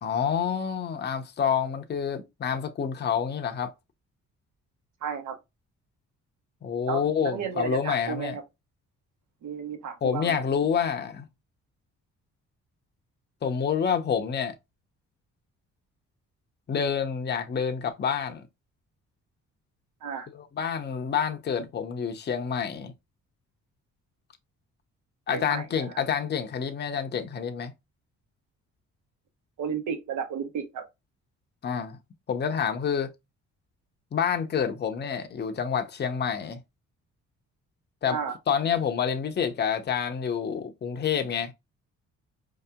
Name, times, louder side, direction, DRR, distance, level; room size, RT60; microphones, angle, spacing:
voice 1, 0.0-3.7 6.6-8.4 10.0-11.3 13.4-14.6 16.7-18.4 20.3-22.9 25.3-27.7 31.6-32.0 32.3-33.1 34.1-36.6 38.0-38.2 38.5-41.5, left 7 dB, 35° left, 0.6 m, -28 dB
voice 2, 5.0-5.3 6.9-8.4 9.4-10.4 20.0-20.3 25.3-25.8 29.6-30.8 38.0-38.3, right 7 dB, 80° right, 1.1 m, -33 dB
4.6 x 2.8 x 2.2 m
cardioid pair, 90°, 30 cm